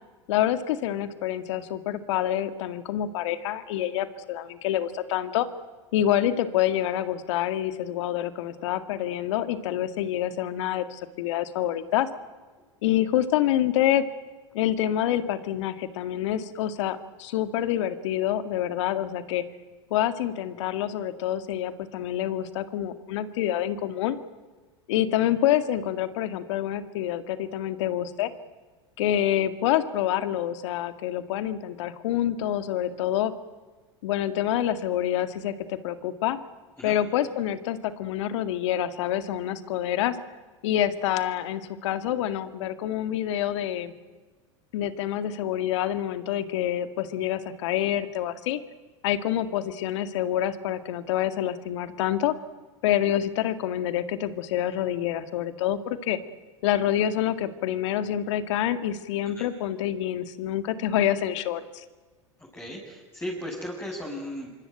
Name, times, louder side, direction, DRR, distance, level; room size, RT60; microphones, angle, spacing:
voice 1, 0.3-5.5 5.9-12.1 12.8-14.0 14.5-19.4 19.9-24.2 24.9-28.3 29.0-33.3 34.0-36.4 36.8-40.2 40.6-43.9 44.7-48.6 49.0-52.4 52.8-56.2 56.6-61.8, left 11 dB, 70° left, 11 dB, 2.1 m, -27 dB
voice 2, 62.5-64.5, left 1 dB, 15° left, -3 dB, 6.9 m, -36 dB
26.0 x 24.0 x 9.1 m, 1.3 s
hypercardioid pair, 85°, 16 cm